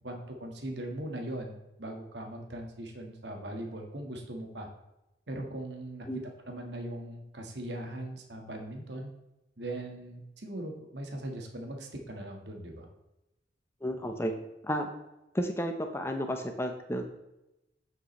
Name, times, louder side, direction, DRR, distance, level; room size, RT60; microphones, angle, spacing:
voice 1, 0.0-4.7 5.3-6.1 6.4-9.1 9.6-12.9, right 1 dB, 65° right, 2 dB, 1.6 m, -40 dB
voice 2, 13.8-14.3 14.6-14.9 15.3-17.1, equal, 15° left, 4 dB, 0.9 m, -32 dB
8.7 x 7.6 x 3.2 m, 0.92 s
head